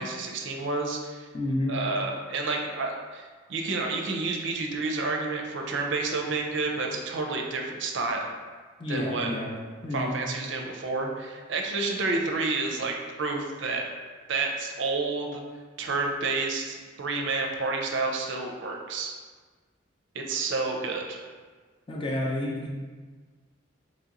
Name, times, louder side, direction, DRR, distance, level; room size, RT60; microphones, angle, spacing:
voice 1, 0.0-1.3 1.7-8.3 8.9-9.3 9.9-13.9 14.3-15.4 15.8-19.1 20.1-21.2, right 3 dB, 60° right, 1 dB, 0.5 m, -30 dB
voice 2, 1.3-1.7 8.8-9.5 9.8-10.2 21.9-22.7, left 1 dB, 25° left, -2 dB, 0.5 m, -29 dB
2.9 x 2.9 x 3.7 m, 1.5 s
head